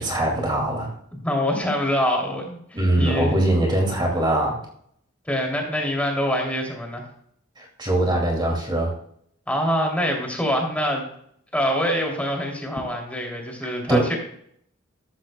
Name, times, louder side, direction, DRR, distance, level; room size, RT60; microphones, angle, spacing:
voice 1, 0.0-0.9 2.7-4.6 7.6-9.0 13.9-14.1, right 1 dB, 20° right, 0 dB, 2.4 m, -22 dB
voice 2, 1.1-3.4 5.3-7.0 9.5-11.1 11.5-14.1, equal, 5° left, 0 dB, 2.8 m, -25 dB
14.0 x 13.5 x 2.3 m, 0.67 s
head